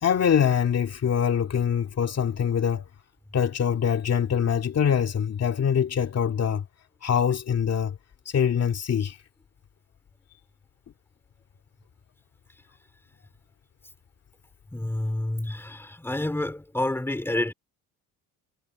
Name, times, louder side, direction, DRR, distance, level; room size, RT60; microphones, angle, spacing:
voice 1, 0.0-2.9 3.3-6.6 7.0-8.0 8.3-9.2, left 8 dB, 40° left, 2.3 m, -24 dB
voice 2, 14.7-17.5, left 1 dB, 5° left, 2.9 m, -29 dB
cardioid pair, 105°, 37 cm